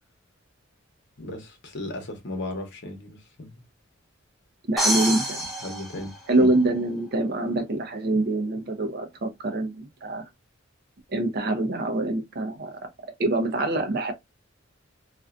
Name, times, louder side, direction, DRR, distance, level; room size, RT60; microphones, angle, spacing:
voice 1, 1.2-3.6 5.6-6.5, left 1 dB, 60° left, 0.9 m, -36 dB
voice 2, 4.7-5.4 6.3-10.2 11.1-12.8 13.2-14.1, right 2 dB, 50° right, 0.6 m, -25 dB
sound 1, 4.8-6.7, right 1 dB, ahead, 0.7 m, -27 dB
2.5 x 2.2 x 2.4 m
head